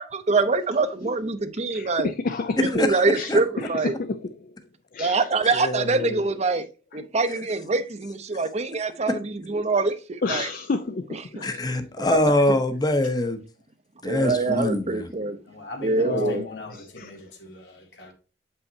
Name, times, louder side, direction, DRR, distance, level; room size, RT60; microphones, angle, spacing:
voice 1, 0.0-2.1 2.6-3.9 5.0-6.6 6.9-9.9 10.3-10.5 12.0-12.2 14.0-15.4 15.8-16.4, right 3 dB, 40° right, 0.6 m, -24 dB
voice 2, 1.7-2.7 3.1-4.6 4.9-6.3 10.2-11.7 16.0-17.1, left 3 dB, 55° left, 0.5 m, -31 dB
voice 3, 2.6-3.0 3.3-3.4 5.4-5.5 11.4-13.4 14.0-15.1, left 1 dB, 25° left, 0.8 m, -23 dB
voice 4, 15.5-18.1, left 2 dB, 80° left, 1.9 m, -41 dB
7.8 x 5.6 x 2.7 m
head